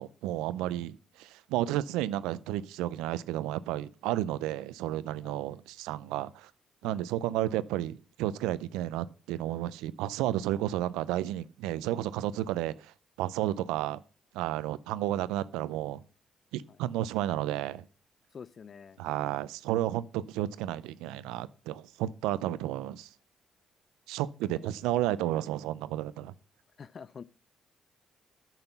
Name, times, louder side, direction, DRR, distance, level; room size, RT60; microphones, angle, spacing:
voice 1, 0.0-6.5 6.8-14.0 14.3-16.0 16.5-17.8 19.0-23.1 24.1-26.3, right 13 dB, 90° right, 0.4 m, -32 dB
voice 2, 18.3-19.0 24.5-24.7 26.8-27.2, left 6 dB, 50° left, 0.4 m, -47 dB
9.1 x 5.9 x 5.6 m
supercardioid pair, 60°, 0 cm